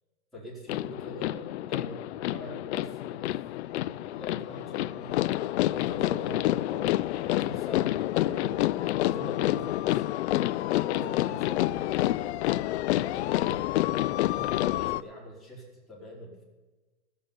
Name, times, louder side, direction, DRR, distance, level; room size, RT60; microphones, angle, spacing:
voice 1, 0.3-3.4 3.9-8.6 9.0-10.3 10.9-12.5 13.2-13.6 14.2-16.4, equal, ahead, -6 dB, 4.3 m, -43 dB
sound 1, 0.7-15.0, left 15 dB, 75° left, 0.5 m, -28 dB
15.0 x 7.4 x 8.7 m, 1.2 s
supercardioid pair, 145°, 33 cm